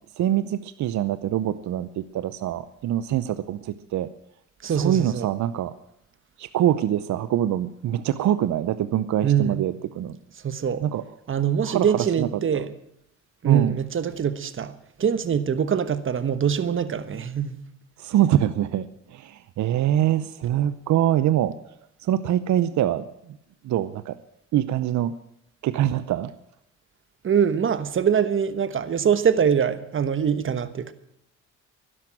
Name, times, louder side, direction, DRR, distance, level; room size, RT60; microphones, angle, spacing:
voice 1, 0.2-4.1 4.6-5.7 6.4-10.2 10.8-11.0 11.6-12.7 13.4-13.7 18.0-21.5 22.0-23.0 23.6-24.2 24.5-25.1 25.6-26.3, right 11 dB, 70° right, 0.7 m, -24 dB
voice 2, 4.6-5.3 9.2-9.7 10.4-10.8 11.3-12.7 13.4-17.7 27.2-30.9, right 8 dB, 40° right, 1.2 m, -23 dB
12.0 x 11.0 x 8.9 m
cardioid pair, 90°, 30 cm